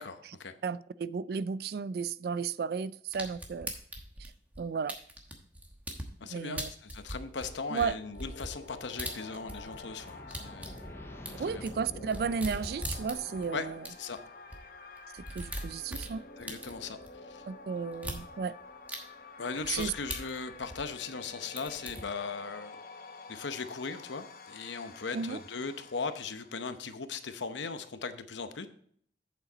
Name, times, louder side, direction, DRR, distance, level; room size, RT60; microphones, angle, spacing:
voice 1, 0.0-0.5 6.2-10.8 11.4-11.6 13.5-13.7 14.0-14.2 16.4-17.0 17.3-17.4 19.4-22.8 23.3-28.7, left 4 dB, 90° left, 0.8 m, -38 dB
voice 2, 0.6-3.7 4.2-4.3 4.6-5.0 6.3-6.7 7.7-8.0 11.4-13.8 15.1-16.3 17.5-18.6 19.7-19.9 25.1-25.4, right 5 dB, 55° right, 0.3 m, -34 dB
sound 1, 3.1-6.1 6.6-9.8 10.0-13.5 13.9-14.0 14.2-14.3 14.5-14.6 15.0-17.1 17.9-18.2 18.9-19.0 19.6-21.3 21.6-22.0, right 1 dB, 10° right, 1.1 m, -40 dB
sound 2, 7.1-27.0, left 3 dB, 50° left, 0.9 m, -50 dB
sound 3, 8.8-14.2, left 1 dB, 15° left, 0.6 m, -49 dB
8.3 x 7.0 x 3.9 m
head